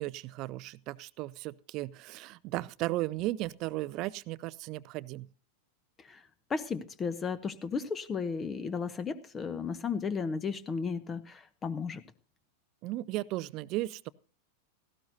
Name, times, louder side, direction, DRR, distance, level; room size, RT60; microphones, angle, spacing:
voice 1, 0.0-5.3 12.8-14.1, right 17 dB, 40° right, 0.5 m, -35 dB
voice 2, 6.5-12.0, left 5 dB, 20° left, 0.9 m, -34 dB
17.5 x 16.0 x 2.7 m
figure-of-eight pair, 90°, 0 cm